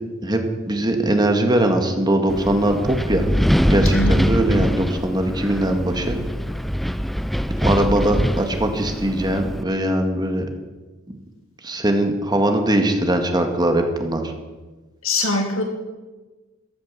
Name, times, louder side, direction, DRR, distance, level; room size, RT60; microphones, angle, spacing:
voice 1, 0.7-3.3 3.7-6.2 7.6-10.5 11.6-14.3, right 1 dB, 20° right, 5 dB, 1.8 m, -21 dB
Wind, 2.3-9.6, equal, ahead, 0.5 m, -23 dB
voice 2, 3.8-4.2 15.0-15.6, left 2 dB, 80° left, 2 dB, 3.3 m, -22 dB
14.5 x 13.0 x 7.3 m, 1.2 s
head